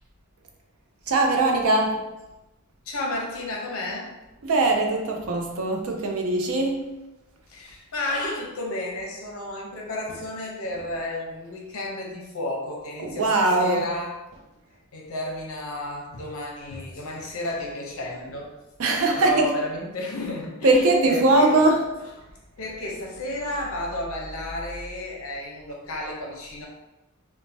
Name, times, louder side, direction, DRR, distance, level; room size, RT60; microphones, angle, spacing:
voice 1, 1.1-2.0 4.4-6.9 13.0-13.8 18.8-19.5 20.6-21.8, right 2 dB, 70° right, 2 dB, 0.5 m, -21 dB
voice 2, 2.9-4.1 7.5-14.2 14.9-18.5 19.1-21.7 22.0-22.1 22.6-26.7, left 1 dB, 65° left, -1 dB, 0.6 m, -32 dB
3.1 x 2.1 x 2.6 m, 1.0 s
head